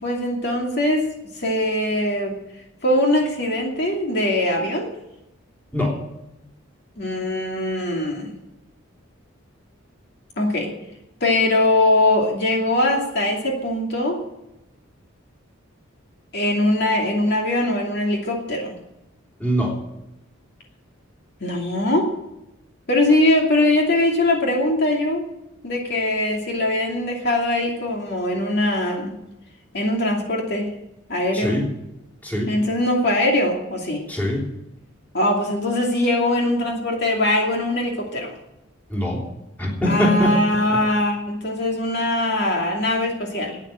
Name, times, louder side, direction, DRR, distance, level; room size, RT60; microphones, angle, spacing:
voice 1, 0.0-1.1 1.4-2.4 2.8-4.9 7.0-8.3 10.4-10.7 11.2-14.2 16.3-18.7 21.4-22.1 22.9-25.2 25.6-29.1 29.7-30.7 31.1-31.6 32.5-34.0 35.1-38.3 39.8-43.6, left 1 dB, 50° left, 0 dB, 2.6 m, -21 dB
voice 2, 19.4-19.7 31.3-31.6 32.2-32.5 34.1-34.4 38.9-39.2 39.6-40.4 40.7-40.8, equal, 10° left, -2 dB, 3.3 m, -22 dB
12.0 x 9.4 x 8.8 m, 0.89 s
head